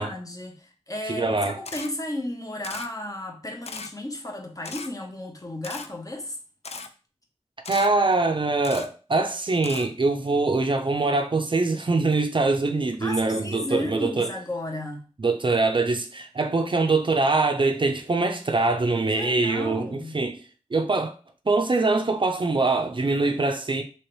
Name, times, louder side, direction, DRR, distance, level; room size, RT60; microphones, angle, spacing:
voice 1, 0.0-6.4 13.0-15.1 19.1-20.2, left 1 dB, 30° left, 0.8 m, -34 dB
voice 2, 1.1-1.6 7.7-14.3 15.2-20.4 20.7-21.1 21.5-23.8, right 3 dB, 45° right, 0.4 m, -23 dB
Camera, 1.6-1.9 2.6-2.9 3.6-3.9 4.6-4.9 5.6-5.9 6.6-6.9 7.6-7.9 8.6-8.9 9.6-9.9, left 4 dB, 65° left, 0.4 m, -37 dB
3.1 x 2.9 x 3.0 m
wide cardioid pair, 60°, 12 cm